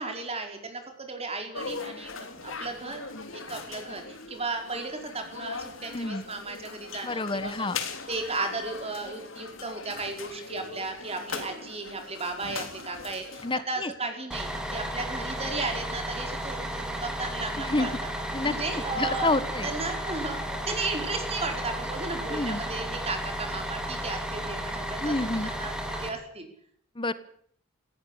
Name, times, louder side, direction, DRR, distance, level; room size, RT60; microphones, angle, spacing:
voice 1, 0.0-7.7 8.1-18.1 18.4-19.3 19.6-26.5, right 3 dB, 30° right, 4 dB, 5.0 m, -35 dB
sound 1, 1.5-13.6, left 4 dB, 75° left, 3.4 m, -40 dB
voice 2, 7.0-7.8 13.4-13.9 17.6-17.9 18.3-18.5 19.0-19.7 22.3-22.6 25.0-25.5 27.0-27.1, left 2 dB, 25° left, 15 dB, 1.4 m, -28 dB
Bus, 14.3-26.1, equal, 5° right, 3.6 m, -33 dB
18.5 x 17.5 x 8.6 m, 0.63 s
head